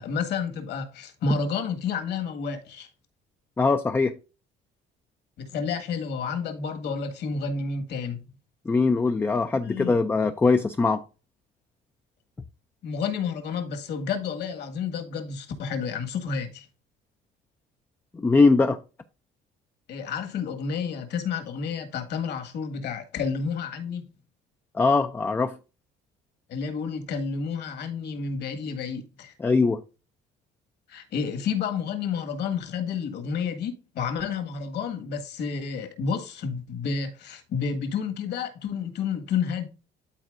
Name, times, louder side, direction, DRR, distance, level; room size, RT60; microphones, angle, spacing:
voice 1, 0.0-2.9 5.4-8.2 9.6-10.0 12.8-16.7 19.9-24.1 26.5-29.3 30.9-39.7, left 5 dB, 60° left, 1.7 m, -30 dB
voice 2, 3.6-4.1 8.7-11.0 18.1-18.8 24.7-25.6 29.4-29.8, left 4 dB, 10° left, 0.3 m, -21 dB
12.0 x 4.4 x 2.5 m
cardioid pair, 155°, 20 cm